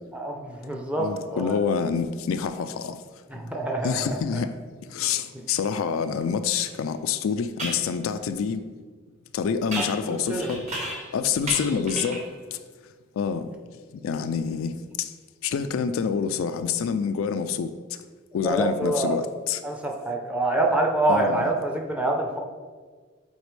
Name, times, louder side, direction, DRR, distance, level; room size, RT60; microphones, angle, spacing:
voice 1, 0.1-1.6 3.3-4.1 10.0-10.5 11.7-11.8 18.4-19.2 19.6-22.4, right 2 dB, 5° right, 0.6 m, -26 dB
voice 2, 1.0-3.0 3.8-4.6 4.9-8.6 9.3-10.7 11.1-12.6 13.2-13.4 14.0-14.7 15.0-15.1 15.4-17.7 18.3-19.6 21.1-21.4, left 6 dB, 80° left, 0.3 m, -27 dB
sound 1, 6.6-6.7 7.6-7.9 9.7-11.2 11.5-12.3, right 1 dB, 35° right, 1.0 m, -34 dB
8.1 x 4.1 x 3.2 m
head